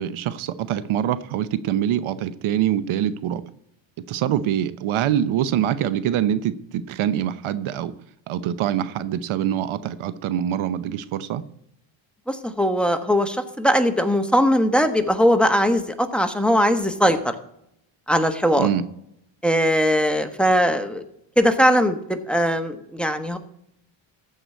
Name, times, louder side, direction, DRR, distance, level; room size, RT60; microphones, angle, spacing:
voice 1, 0.0-3.4 4.1-7.9 8.3-11.4 18.6-18.8, right 10 dB, 75° right, 14 dB, 0.8 m, -24 dB
voice 2, 12.3-17.3 18.1-18.7 19.4-21.0 21.4-23.4, equal, ahead, 7 dB, 1.3 m, -20 dB
14.0 x 4.9 x 8.1 m, 0.75 s
cardioid pair, 90°, 49 cm